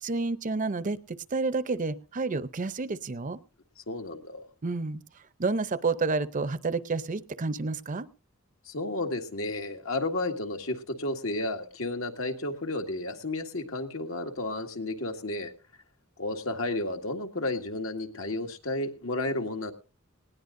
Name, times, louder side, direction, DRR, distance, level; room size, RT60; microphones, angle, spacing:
voice 1, 0.0-3.4 4.6-5.0 5.4-8.1, right 3 dB, 40° right, 14 dB, 0.6 m, -30 dB
voice 2, 3.8-4.5 8.7-15.5 16.2-19.7, left 2 dB, 75° left, 4 dB, 1.8 m, -32 dB
19.5 x 17.0 x 2.6 m, 0.34 s
head